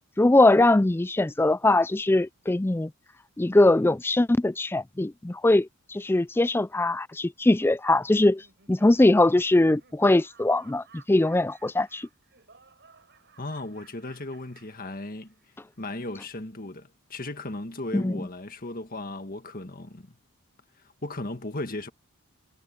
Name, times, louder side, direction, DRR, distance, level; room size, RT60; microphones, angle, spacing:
voice 1, 0.2-2.9 3.4-12.1 17.9-18.1, left 2 dB, 10° left, 0.3 m, -21 dB
Laughter, 8.0-15.5, right 5 dB, 50° right, 6.9 m, -57 dB
voice 2, 13.4-15.3 15.8-20.2 21.0-21.9, left 2 dB, 40° left, 1.7 m, -36 dB
head